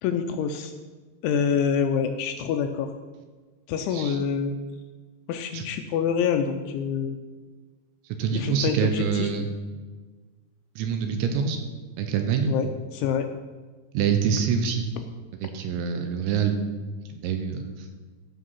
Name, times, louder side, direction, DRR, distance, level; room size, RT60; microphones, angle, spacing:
voice 1, 0.0-0.7 1.2-2.9 3.7-4.5 5.3-7.2 8.3-9.5 12.5-13.3, left 7 dB, 80° left, 6 dB, 2.7 m, -26 dB
voice 2, 8.1-9.5 10.8-11.6 12.0-12.6 13.9-14.9 15.3-16.7 17.1-17.9, right 6 dB, 75° right, 5 dB, 3.0 m, -26 dB
15.5 x 6.4 x 5.6 m, 1.4 s
omnidirectional pair, 5.8 m